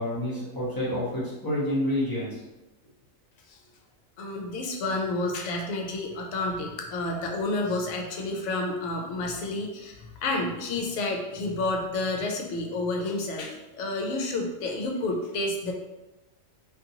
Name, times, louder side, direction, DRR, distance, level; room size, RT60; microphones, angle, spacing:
voice 1, 0.0-2.4, left 1 dB, 20° left, -8 dB, 0.8 m, -28 dB
voice 2, 4.2-15.7, left 2 dB, 70° left, 1 dB, 0.9 m, -30 dB
2.5 x 2.5 x 2.7 m, 1.0 s
omnidirectional pair, 1.4 m